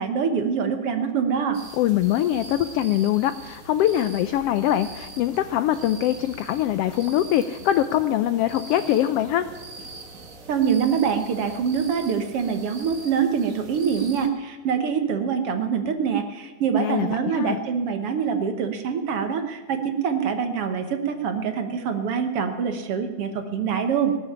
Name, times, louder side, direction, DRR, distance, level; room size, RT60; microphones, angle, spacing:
voice 1, 0.0-1.6 10.5-24.1, right 7 dB, 60° right, 7 dB, 1.7 m, -25 dB
sound 1, 1.5-14.3, right 3 dB, 35° right, 1.4 m, -43 dB
voice 2, 1.7-9.5 16.8-17.6, left 12 dB, 90° left, 12 dB, 1.3 m, -23 dB
19.0 x 7.3 x 9.9 m, 1.4 s
omnidirectional pair, 3.4 m